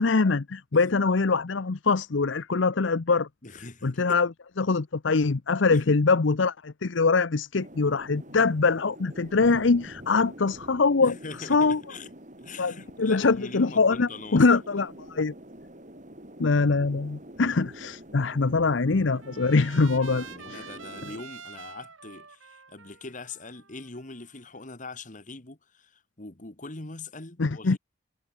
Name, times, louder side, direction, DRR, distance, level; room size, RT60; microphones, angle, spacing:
voice 1, 0.0-3.3 3.8-4.3 4.6-11.8 12.6-15.3 16.4-20.6 27.4-27.8, left 4 dB, 65° left, 0.7 m, -23 dB
voice 2, 3.4-4.2 5.7-5.9 11.0-12.1 12.4-14.8 20.0-27.8, left 3 dB, 40° left, 1.7 m, -42 dB
sound 1, 7.5-21.2, right 1 dB, 40° right, 6.1 m, -46 dB
Trumpet, 18.4-24.6, right 6 dB, 80° right, 7.8 m, -47 dB
head